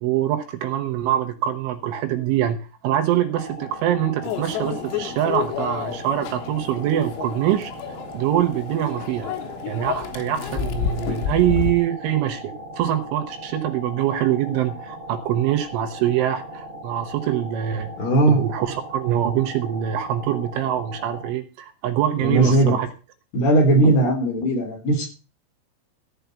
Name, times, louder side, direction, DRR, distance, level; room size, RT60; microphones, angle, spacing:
voice 1, 0.0-9.3 9.7-17.9 18.3-22.9, right 11 dB, 75° right, 6 dB, 3.4 m, -24 dB
sound 1, 3.4-21.3, equal, 40° right, 1.0 m, -39 dB
Microwave oven, 4.2-11.7, left 9 dB, 85° left, 4.1 m, -30 dB
voice 2, 18.0-18.4 22.2-22.7 23.3-25.1, right 2 dB, 55° left, 1 dB, 5.5 m, -18 dB
14.5 x 5.4 x 8.1 m, 0.35 s
omnidirectional pair, 5.9 m